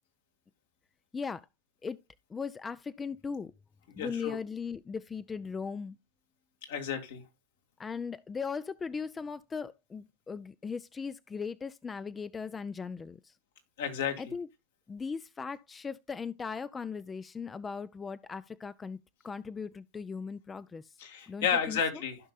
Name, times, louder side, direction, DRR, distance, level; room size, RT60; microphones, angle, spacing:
voice 1, 1.1-1.5 1.8-2.0 2.3-3.5 4.0-6.0 7.8-13.3 14.2-14.5 14.9-19.0 19.2-20.9 21.3-21.8, left 5 dB, 15° left, 0.4 m, -38 dB
voice 2, 4.0-4.4 6.7-7.2 13.8-14.3 21.0-22.2, left 7 dB, 75° left, 2.5 m, -32 dB
15.5 x 5.4 x 2.3 m
hypercardioid pair, 110°, 0 cm